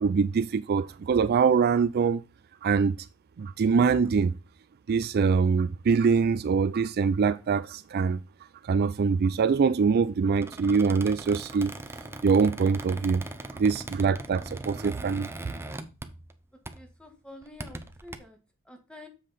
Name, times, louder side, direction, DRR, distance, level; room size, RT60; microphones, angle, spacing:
voice 1, 0.0-2.2 2.6-2.9 3.4-4.3 4.9-8.2 8.7-11.7 12.2-13.2 13.6-15.3, right 5 dB, 45° right, 0.4 m, -24 dB
Squeak, 10.3-16.4 16.7-16.9 17.4-18.2, right 2 dB, 10° right, 0.7 m, -40 dB
voice 2, 16.7-18.4 18.6-19.1, left 2 dB, 5° left, 1.5 m, -48 dB
7.4 x 5.4 x 4.1 m
head